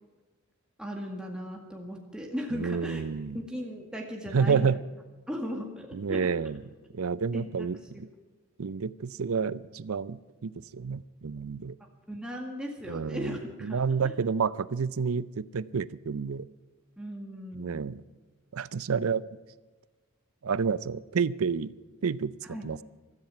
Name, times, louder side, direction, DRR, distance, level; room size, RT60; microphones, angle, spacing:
voice 1, 0.8-3.0 3.3-4.7 5.3-6.3 7.3-7.7 12.1-14.1 17.0-17.8 22.4-22.7, equal, 5° right, 0 dB, 1.9 m, -37 dB
voice 2, 2.5-3.4 4.3-4.8 5.9-6.6 6.9-7.8 8.6-11.8 12.9-16.5 17.5-18.0 18.5-19.2 20.4-21.7 22.0-22.3 22.6-22.8, right 5 dB, 85° right, 17 dB, 0.6 m, -29 dB
16.0 x 13.5 x 5.9 m, 1.3 s
head